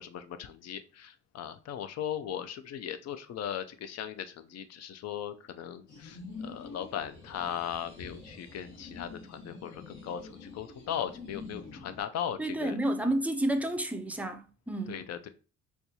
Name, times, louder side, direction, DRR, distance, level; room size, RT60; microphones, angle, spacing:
voice 1, 0.0-12.8 14.9-15.3, left 9 dB, 60° left, 0.4 m, -38 dB
sound 1, 5.9-12.0, left 3 dB, 75° left, 1.5 m, -46 dB
voice 2, 12.4-15.0, right 1 dB, 5° right, 0.4 m, -30 dB
4.3 x 2.3 x 2.7 m
cardioid pair, 90°, 30 cm